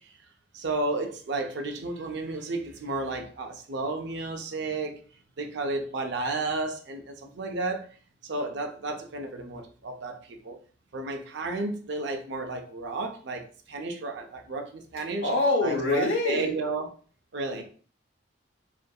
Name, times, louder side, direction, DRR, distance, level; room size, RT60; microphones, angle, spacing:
voice 1, 0.5-5.0 5.4-7.9 8.2-10.6 10.9-15.3 15.6-16.9 17.3-17.6, right 2 dB, 60° right, 4 dB, 0.4 m, -32 dB
voice 2, 15.2-16.5, left 2 dB, 85° left, -1 dB, 0.7 m, -25 dB
2.6 x 2.5 x 2.2 m, 0.42 s
head